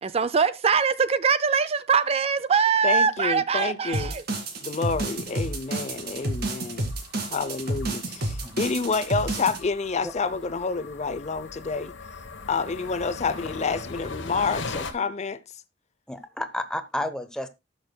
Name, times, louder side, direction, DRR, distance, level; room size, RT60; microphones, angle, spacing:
voice 1, 0.0-4.2, right 6 dB, 35° right, 0.4 m, -22 dB
voice 2, 2.8-4.1 4.6-6.9 7.2-11.9 12.5-15.4, left 4 dB, 35° left, 0.6 m, -28 dB
sound 1, 3.9-9.6, right 1 dB, 55° right, 2.1 m, -30 dB
sound 2, 5.1-14.9, left 3 dB, 75° left, 1.2 m, -40 dB
voice 3, 16.1-17.5, left 1 dB, 5° left, 0.8 m, -31 dB
18.0 x 6.3 x 2.2 m
head